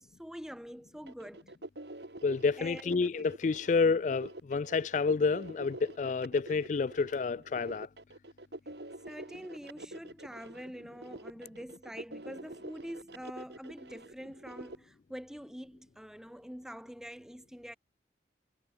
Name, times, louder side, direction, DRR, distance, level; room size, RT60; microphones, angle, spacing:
voice 1, 0.0-1.5 2.6-3.1 9.1-17.8, equal, 5° right, 1.3 m, -45 dB
sound 1, 1.1-14.8, right 1 dB, 70° right, 2.5 m, -47 dB
voice 2, 2.2-7.9, left 4 dB, 40° left, 0.3 m, -29 dB
head